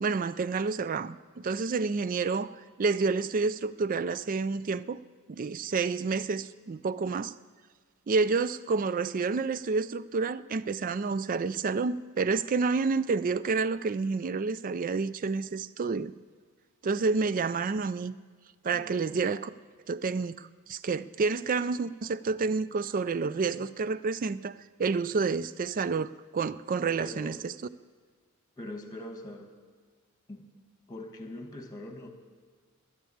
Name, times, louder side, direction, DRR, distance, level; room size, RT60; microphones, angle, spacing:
voice 1, 0.0-5.0 5.3-7.3 8.1-16.1 16.8-18.2 18.6-19.5 19.9-27.5, right 4 dB, 40° right, 17 dB, 0.3 m, -29 dB
voice 2, 27.0-27.3 28.6-29.5 30.3-30.5 30.9-32.1, left 1 dB, 15° left, 5 dB, 1.5 m, -42 dB
12.5 x 9.9 x 8.6 m, 1.5 s
head